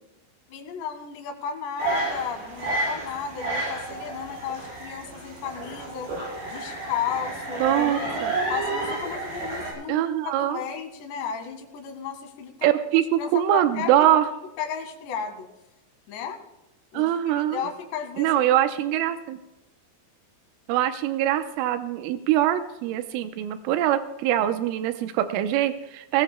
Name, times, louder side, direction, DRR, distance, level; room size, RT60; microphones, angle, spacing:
voice 1, 0.5-6.1 6.5-7.6 8.0-8.2 8.5-10.1 10.4-12.8 13.2-14.1 14.6-15.5 16.1-16.4 16.9-18.4, left 7 dB, 65° left, 4 dB, 3.7 m, -34 dB
sound 1, 1.8-9.7, right 2 dB, 65° right, 7.1 m, -31 dB
voice 2, 7.6-8.3 9.9-10.6 12.6-14.3 16.9-17.7 18.2-19.4 20.7-26.2, right 12 dB, 90° right, 9 dB, 3.2 m, -23 dB
20.0 x 18.5 x 2.2 m, 0.96 s
omnidirectional pair, 5.7 m